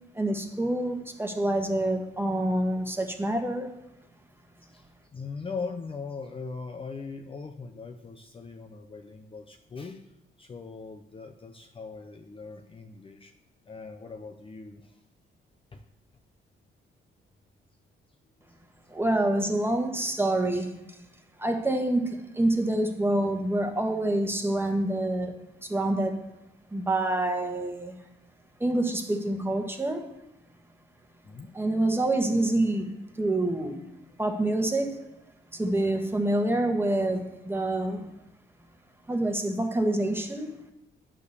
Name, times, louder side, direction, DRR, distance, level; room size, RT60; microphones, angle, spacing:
voice 1, 0.1-3.7 18.9-20.7 21.4-25.4 25.6-26.2 26.7-27.9 28.6-30.0 31.5-33.8 34.2-35.0 35.5-38.1 39.1-40.5, right 1 dB, 10° right, 5 dB, 1.3 m, -27 dB
voice 2, 5.1-10.0 10.4-13.3 13.7-14.9 15.7-15.8 31.3-31.5, left 4 dB, 25° left, 5 dB, 0.6 m, -40 dB
9.5 x 5.0 x 6.7 m, 0.90 s
cardioid pair, 90°, 20 cm